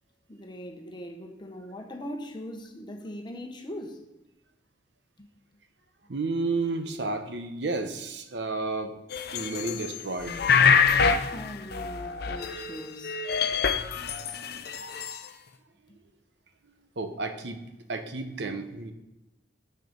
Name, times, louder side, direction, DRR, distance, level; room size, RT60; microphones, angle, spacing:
voice 1, 0.3-4.0 5.2-5.3 11.2-13.2, equal, 25° left, 1.0 m, -40 dB
voice 2, 6.1-8.9 9.3-10.3 17.0-17.6 17.9-18.9, right 3 dB, 70° right, 0.8 m, -31 dB
sound 1, 9.1-9.9 10.2-12.8 13.0-15.2, left 6 dB, 60° left, 0.6 m, -25 dB
6.6 x 6.6 x 5.1 m
head